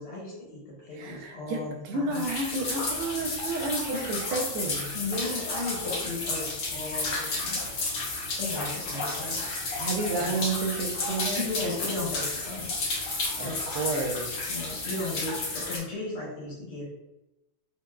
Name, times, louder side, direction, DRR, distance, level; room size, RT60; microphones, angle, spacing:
voice 1, 0.0-2.3 3.9-4.4 4.9-9.4 9.7-9.9 10.2-10.3 11.3-13.6 14.5-16.9, left 2 dB, 80° left, -7 dB, 2.0 m, -36 dB
voice 2, 0.9-5.0 9.8-11.4 13.4-13.5 13.7-14.4, right 3 dB, 90° right, 2 dB, 1.6 m, -31 dB
sound 1, 2.1-15.8, left 3 dB, 55° left, 1.4 m, -32 dB
5.0 x 2.8 x 2.2 m, 0.96 s
omnidirectional pair, 2.3 m